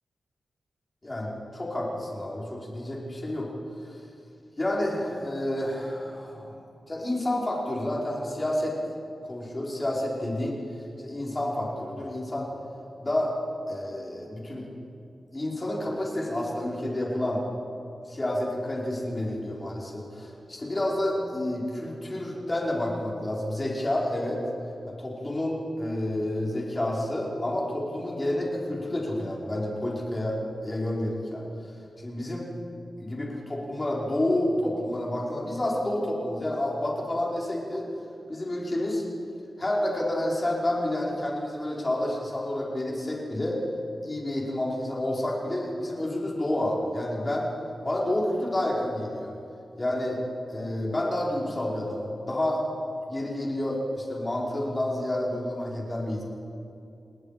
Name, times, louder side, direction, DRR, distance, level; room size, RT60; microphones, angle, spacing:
voice 1, 1.0-3.5 3.9-4.0 4.6-6.5 6.9-8.8 9.3-10.6 11.0-12.5 13.0-13.3 13.7-14.7 15.3-17.4 18.1-24.4 24.9-30.4 30.6-31.4 32.0-32.5 33.0-37.9 38.3-39.0 39.6-43.6 44.0-47.5 47.9-49.3 49.8-50.2 50.5-52.6 53.1-56.2, left 1 dB, 20° left, -4 dB, 5.3 m, -29 dB
29.5 x 19.5 x 5.3 m, 2.7 s
wide cardioid pair, 125°, 0 cm